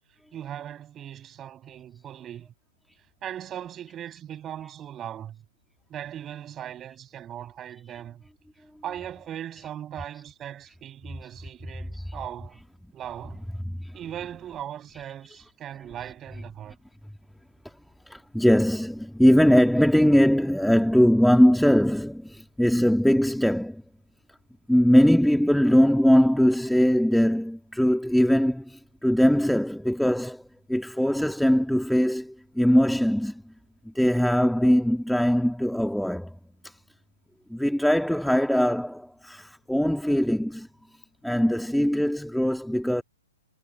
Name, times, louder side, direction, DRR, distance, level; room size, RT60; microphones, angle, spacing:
voice 1, 0.3-2.5 3.2-5.4 5.9-8.2 8.8-12.6 12.9-13.5 13.9-16.8, right 10 dB, 20° right, 6.8 m, -39 dB
voice 2, 13.3-14.0 14.9-15.0 15.3-15.5 16.0-16.4 18.1-23.8 24.7-30.4 30.7-33.5 33.9-36.4 36.6-36.8 37.5-40.7 41.2-43.0, equal, ahead, 1.8 m, -21 dB
figure-of-eight pair, 120°, 0 cm